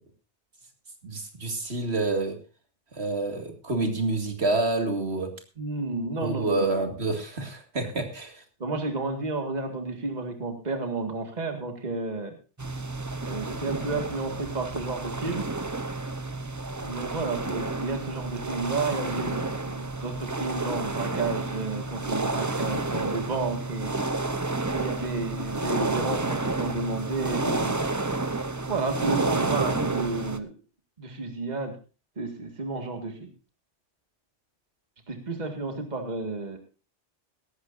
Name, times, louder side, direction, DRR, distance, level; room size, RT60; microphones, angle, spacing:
voice 1, 1.0-2.4 2.9-5.3 6.2-8.3, right 2 dB, 60° right, 5 dB, 2.4 m, -28 dB
voice 2, 5.6-6.7 8.6-12.4 13.2-15.5 16.8-23.9 24.7-27.8 28.7-30.6 31.0-31.8 32.2-33.3 35.1-36.6, right 3 dB, 35° right, 5 dB, 2.0 m, -31 dB
sound 1, 12.6-30.4, right 3 dB, 20° right, 0.7 m, -30 dB
18.0 x 14.5 x 2.6 m, 0.32 s
omnidirectional pair, 1.2 m